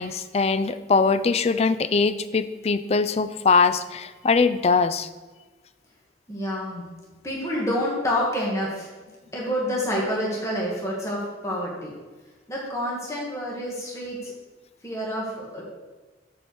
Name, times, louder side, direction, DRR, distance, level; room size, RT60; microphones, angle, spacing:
voice 1, 0.0-5.1, left 4 dB, 35° left, 13 dB, 0.4 m, -22 dB
voice 2, 6.3-6.8 7.2-8.9 9.3-11.9 12.5-14.3 14.8-15.6, equal, 15° left, -4 dB, 1.6 m, -28 dB
7.4 x 4.7 x 6.9 m, 1.3 s
head